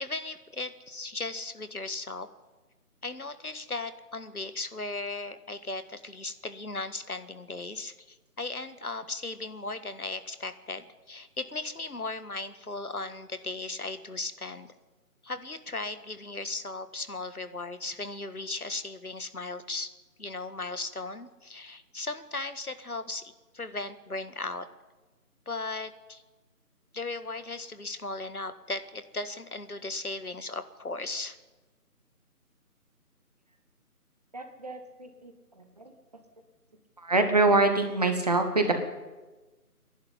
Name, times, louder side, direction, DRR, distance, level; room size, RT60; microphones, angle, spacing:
voice 1, 0.0-2.3 3.0-14.7 15.2-19.9 20.2-24.7 25.4-26.2 26.9-31.4, left 3 dB, 70° left, 11 dB, 1.7 m, -37 dB
voice 2, 34.3-35.9 37.0-38.7, right 2 dB, 25° right, 6 dB, 1.4 m, -25 dB
23.5 x 11.5 x 9.7 m, 1.2 s
figure-of-eight pair, 160°, 45 cm